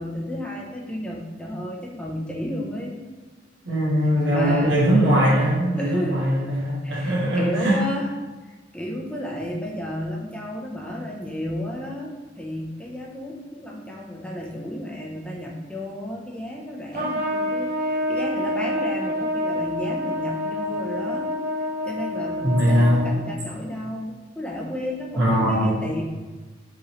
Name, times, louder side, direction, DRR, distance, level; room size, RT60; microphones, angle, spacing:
voice 1, 0.0-3.0 4.3-4.8 5.8-6.2 6.8-8.1 8.4-21.3 21.8-26.0, left 1 dB, 5° left, -2 dB, 0.6 m, -32 dB
voice 2, 3.6-7.8 22.4-23.0 25.1-25.8, equal, 80° right, -6 dB, 1.3 m, -20 dB
Trumpet, 16.9-23.5, left 1 dB, 55° right, 1.1 m, -27 dB
4.7 x 3.0 x 3.1 m, 1.2 s
head